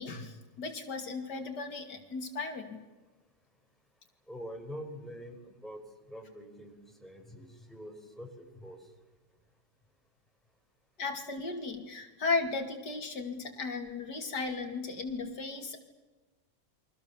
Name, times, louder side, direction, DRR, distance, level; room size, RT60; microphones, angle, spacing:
voice 1, 0.0-2.8 11.0-15.8, left 3 dB, 85° left, 4 dB, 3.0 m, -35 dB
voice 2, 4.3-5.8 6.1-6.7 7.0-8.8, equal, ahead, 2 dB, 4.7 m, -45 dB
29.0 x 24.0 x 7.1 m, 1.2 s
omnidirectional pair, 1.8 m